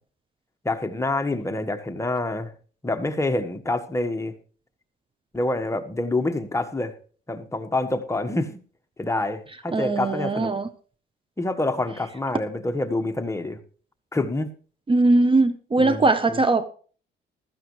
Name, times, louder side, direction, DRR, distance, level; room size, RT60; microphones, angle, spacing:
voice 1, 0.6-2.5 2.8-4.3 5.3-6.9 7.3-8.6 9.0-10.5 11.4-13.6 14.1-14.5 15.8-16.4, left 2 dB, 15° left, 1.4 m, -27 dB
voice 2, 9.7-10.7 14.9-16.7, right 2 dB, 25° right, 0.8 m, -20 dB
15.0 x 13.0 x 3.1 m
cardioid pair, 90°, 20 cm